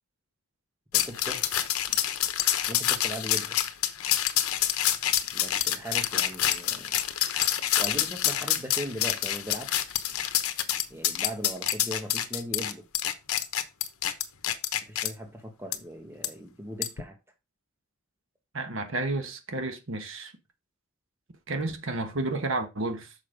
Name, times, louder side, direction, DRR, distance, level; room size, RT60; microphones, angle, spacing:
sound 1, 0.9-15.1 15.7-15.8 16.2-16.3 16.8-17.0, left 11 dB, 85° left, 1.0 m, -27 dB
voice 1, 0.9-1.7 2.7-3.6 5.3-7.0 7.8-9.9 10.9-12.8 14.8-17.2, equal, 10° right, 1.3 m, -39 dB
voice 2, 18.5-20.3 21.5-23.1, right 2 dB, 60° right, 1.3 m, -31 dB
6.7 x 5.5 x 5.2 m
head